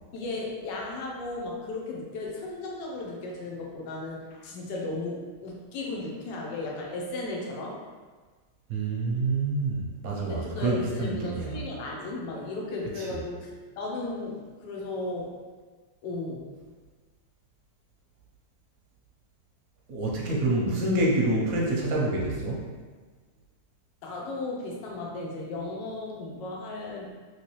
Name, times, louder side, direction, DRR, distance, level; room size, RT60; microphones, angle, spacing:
voice 1, 0.1-7.8 10.2-13.5 13.7-15.4 16.0-16.5 24.0-27.1, left 2 dB, 80° left, -2 dB, 1.3 m, -35 dB
voice 2, 8.7-11.6 19.9-22.6, right 2 dB, 65° right, -3 dB, 0.9 m, -27 dB
3.2 x 3.1 x 2.9 m, 1.4 s
omnidirectional pair, 2.0 m